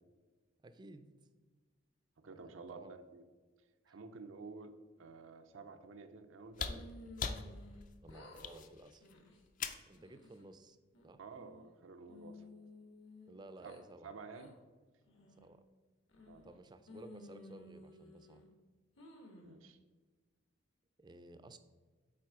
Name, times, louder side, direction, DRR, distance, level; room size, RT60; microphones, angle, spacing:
voice 1, 0.6-1.1 2.2-2.9 3.9-4.0 8.0-9.1 9.9-10.8 11.0-11.2 13.3-14.1 15.4-15.6 16.4-18.4 21.0-21.6, right 2 dB, 20° right, 10 dB, 0.4 m, -55 dB
voice 2, 2.2-3.2 3.9-6.8 11.2-12.4 13.6-13.7 14.0-14.6 16.3-16.7 19.4-19.8, right 4 dB, 85° right, 7 dB, 0.6 m, -51 dB
sound 1, 6.4-10.0 11.4-11.5, left 5 dB, 40° left, 0.4 m, -42 dB
sound 2, 6.7-7.8 8.1-8.6 9.0-9.4 9.9-10.4 10.9-11.7 12.1-13.8 14.3-14.5 15.1-15.5 16.1-16.6 16.9-18.5 19.0-19.6, left 2 dB, 70° left, 1.3 m, -55 dB
7.5 x 4.4 x 4.7 m, 1.3 s
head